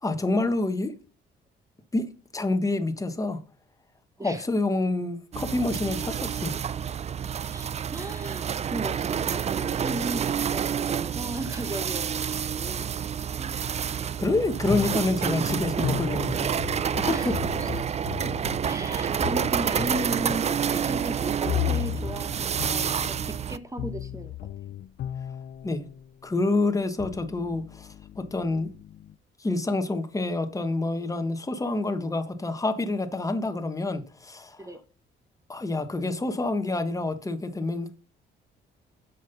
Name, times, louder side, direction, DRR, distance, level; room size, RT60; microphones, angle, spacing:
voice 1, 0.0-0.9 1.9-2.0 2.3-3.4 4.2-6.5 14.2-16.6 17.1-17.3 25.6-25.8 26.2-28.7 29.4-34.7 35.5-38.0, left 2 dB, 15° left, 1.2 m, -27 dB
sound 1, 5.3-23.6, right 8 dB, 35° right, 0.4 m, -29 dB
voice 2, 7.5-12.9 13.3-13.6 14.3-14.4 17.0-17.9 18.2-18.3 18.6-24.3 34.6-34.8, right 1 dB, 15° right, 1.0 m, -36 dB
sound 2, 14.6-26.1 26.7-29.1, left 12 dB, 60° left, 0.5 m, -35 dB
7.4 x 5.5 x 5.7 m
cardioid pair, 90°, 20 cm